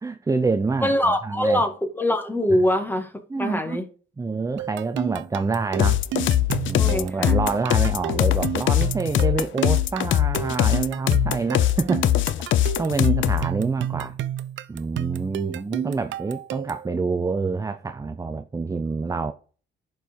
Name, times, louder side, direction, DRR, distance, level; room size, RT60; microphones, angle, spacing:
voice 1, 0.0-1.0 1.2-1.6 3.3-3.8 4.2-6.0 6.6-12.2 12.8-14.2 14.7-19.3, right 4 dB, 15° right, 0.6 m, -27 dB
voice 2, 0.8-3.8 6.8-7.4, left 1 dB, 10° left, 1.9 m, -23 dB
sound 1, 4.6-16.9, right 11 dB, 70° right, 0.6 m, -31 dB
sound 2, 5.8-13.5, left 12 dB, 75° left, 0.6 m, -21 dB
11.0 x 4.8 x 5.3 m
cardioid pair, 90°, 20 cm